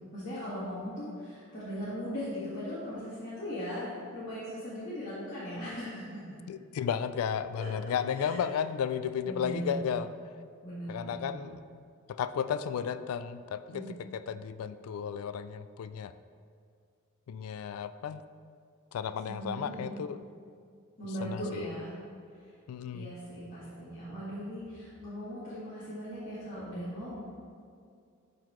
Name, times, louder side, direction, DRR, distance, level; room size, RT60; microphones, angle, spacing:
voice 1, 0.1-6.2 7.6-8.4 9.2-10.0 10.6-11.5 13.7-13.9 19.2-19.9 21.0-21.9 22.4-22.5 22.9-27.2, equal, 35° left, -12 dB, 1.6 m, -39 dB
voice 2, 6.5-10.1 10.9-11.6 12.1-16.1 17.3-18.2 18.9-20.2 21.2-21.7 22.7-23.1, left 7 dB, 80° left, 13 dB, 0.3 m, -34 dB
11.5 x 3.9 x 3.1 m, 2.3 s
head